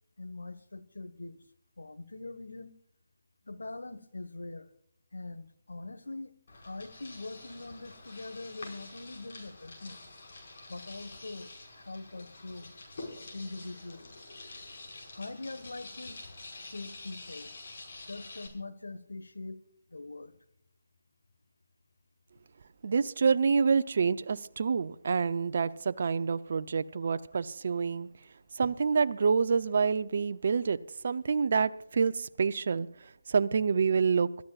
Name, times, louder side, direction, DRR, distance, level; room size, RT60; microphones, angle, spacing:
voice 1, 0.2-1.4 1.8-2.7 3.5-4.7 5.1-6.3 6.6-10.0 10.7-12.7 13.3-14.1 15.1-17.5 18.1-19.6 19.9-20.4, left 2 dB, 85° left, 10 dB, 1.4 m, -43 dB
sound 1, 6.5-18.5, left 2 dB, 55° left, 5.3 m, -47 dB
voice 2, 22.8-28.1 28.5-34.3, right 5 dB, 55° right, 11 dB, 0.6 m, -27 dB
27.0 x 13.5 x 2.4 m, 0.70 s
figure-of-eight pair, 155°, 0 cm